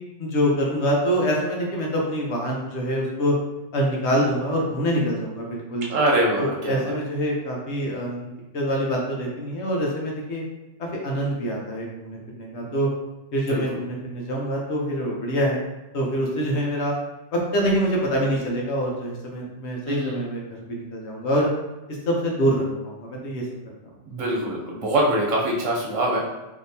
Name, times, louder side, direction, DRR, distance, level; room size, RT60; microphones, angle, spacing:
voice 1, 0.2-3.4 3.7-5.9 6.4-10.4 10.8-12.9 13.3-15.6 15.9-17.0 17.3-21.5 22.1-23.4, equal, 65° left, -2 dB, 1.0 m, -25 dB
voice 2, 5.9-6.9 13.4-13.6 19.9-20.3 24.1-26.3, right 1 dB, 85° right, -3 dB, 1.2 m, -24 dB
3.6 x 2.7 x 2.7 m, 1.0 s
omnidirectional pair, 1.3 m